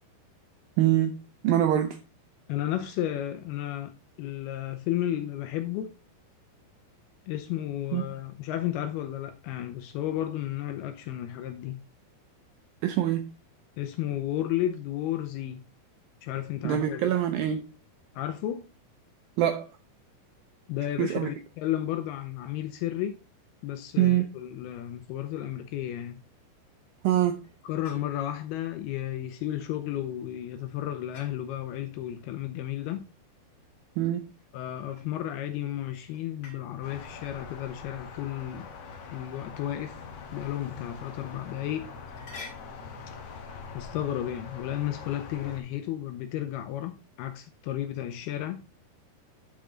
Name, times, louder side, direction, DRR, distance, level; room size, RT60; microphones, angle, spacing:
voice 1, 0.8-1.2 1.4-2.0 7.9-8.0 12.8-13.3 16.6-17.6 19.4-19.7 21.0-21.3 24.0-24.3 27.0-27.4 34.0-34.2, right 12 dB, 80° right, 2.1 m, -24 dB
voice 2, 2.5-6.0 7.3-11.8 13.8-15.6 16.2-17.1 18.2-18.7 20.7-23.2 23.6-26.2 27.6-33.1 34.5-38.7 39.1-40.0 40.3-41.9 43.7-48.6, left 12 dB, 80° left, 2.4 m, -33 dB
sound 1, 27.4-28.4 31.1-31.4 34.4-35.4 36.1-36.7 38.8-39.2 40.0-40.1 40.6-40.7 41.5-41.6 42.0-42.9, left 4 dB, 35° left, 2.7 m, -48 dB
sound 2, 36.8-45.6, left 5 dB, 60° left, 2.0 m, -43 dB
9.9 x 5.5 x 3.8 m
omnidirectional pair, 4.9 m